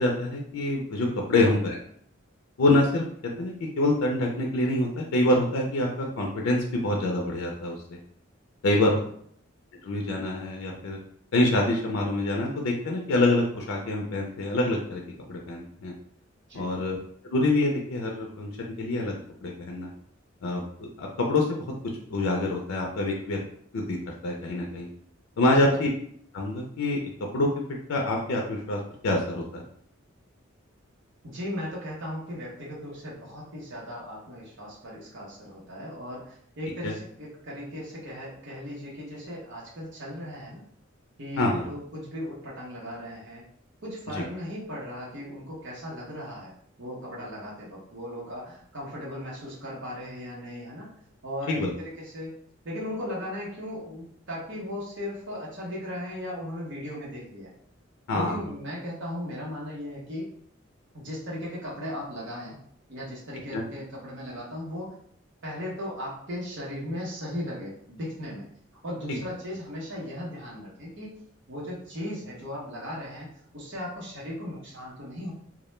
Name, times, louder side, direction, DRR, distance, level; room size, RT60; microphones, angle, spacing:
voice 1, 0.0-1.8 2.6-3.0 3.4-8.0 8.6-9.0 9.8-11.0 11.3-15.0 15.3-15.9 16.5-17.0 17.3-18.5 18.8-19.1 19.4-19.9 20.4-21.6 22.1-23.4 23.7-24.0 24.2-24.9 25.4-25.9 26.3-27.0 27.3-27.5 27.9-29.6 36.8-36.9 41.4-41.6 44.1-44.2 51.5-51.7 58.1-58.4 63.5-63.6 69.1-69.2, left 2 dB, 90° left, 0 dB, 0.4 m, -26 dB
voice 2, 31.2-40.7 41.2-43.4 43.8-46.5 46.8-50.9 51.2-51.7 52.0-52.3 52.6-57.5 58.1-60.3 60.9-62.6 62.9-64.9 65.4-68.4 68.8-71.2 71.5-75.3, left 1 dB, 65° right, -6 dB, 0.8 m, -37 dB
2.2 x 2.1 x 3.0 m, 0.64 s
head